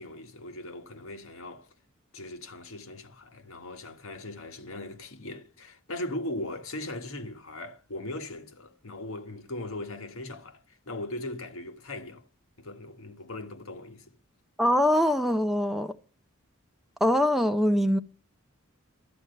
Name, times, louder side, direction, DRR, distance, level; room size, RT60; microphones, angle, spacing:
voice 1, 0.0-1.7 2.1-12.2 12.6-14.1, left 1 dB, 75° left, 1.5 m, -39 dB
voice 2, 14.6-15.9 17.0-18.0, left 1 dB, ahead, 0.6 m, -23 dB
13.0 x 8.8 x 6.7 m
head